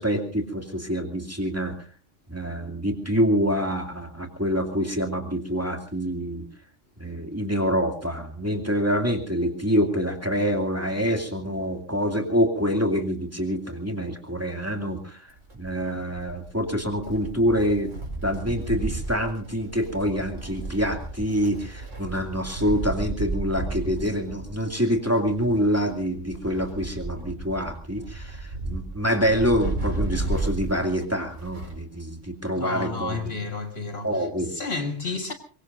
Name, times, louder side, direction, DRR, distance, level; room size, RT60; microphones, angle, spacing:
voice 1, 0.0-1.7 2.3-6.5 7.0-15.2 15.6-17.9 18.2-33.3 34.0-34.5, equal, 10° right, 2.4 m, -26 dB
Wind, 15.3-31.9 32.2-32.3 33.3-33.4, right 2 dB, 75° right, 5.0 m, -33 dB
voice 2, 32.5-35.3, left 4 dB, 50° left, 1.9 m, -31 dB
24.0 x 22.0 x 2.6 m
omnidirectional pair, 1.3 m